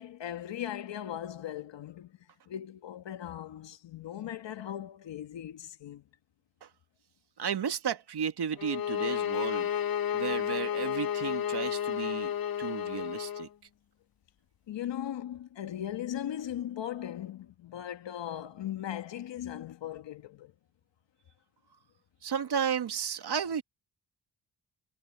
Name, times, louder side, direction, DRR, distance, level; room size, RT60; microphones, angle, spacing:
voice 1, 0.0-6.1 14.7-20.5, left 11 dB, 80° left, 2.0 m, -38 dB
voice 2, 7.4-9.7 10.1-12.3 12.6-13.5 22.2-23.6, right 7 dB, 65° right, 1.9 m, -33 dB
sound 1, 8.6-13.5, left 9 dB, 55° left, 0.9 m, -31 dB
cardioid pair, 60°, 43 cm